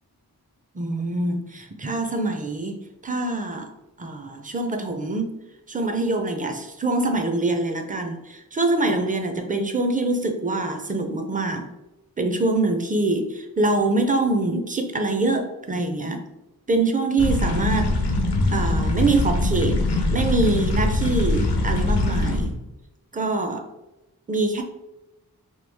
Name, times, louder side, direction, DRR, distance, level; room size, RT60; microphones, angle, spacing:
voice 1, 0.7-5.4 5.7-11.7 12.2-16.2 16.7-18.0 18.5-19.8 20.1-22.5 23.1-23.7 24.3-24.6, right 2 dB, 20° right, 5 dB, 0.4 m, -24 dB
sound 1, 17.2-22.5, left 2 dB, 85° left, 0.6 m, -22 dB
3.0 x 2.3 x 3.4 m, 0.98 s
cardioid pair, 45°, 39 cm